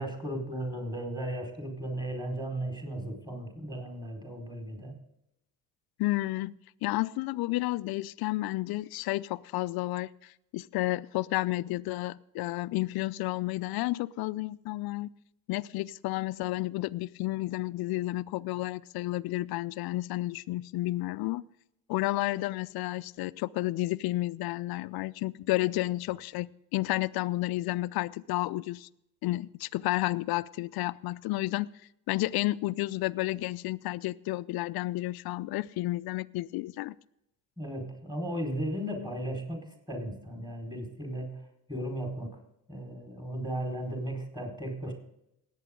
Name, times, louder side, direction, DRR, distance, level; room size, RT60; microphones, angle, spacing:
voice 1, 0.0-4.9 37.6-41.4 41.7-42.4 42.7-44.9, right 1 dB, 10° right, 1 dB, 4.6 m, -36 dB
voice 2, 6.0-15.1 15.5-21.4 21.9-28.9 29.2-31.7 32.1-36.9, left 18 dB, 55° left, 18 dB, 0.6 m, -31 dB
18.5 x 8.5 x 3.8 m, 0.81 s
hypercardioid pair, 70°, 44 cm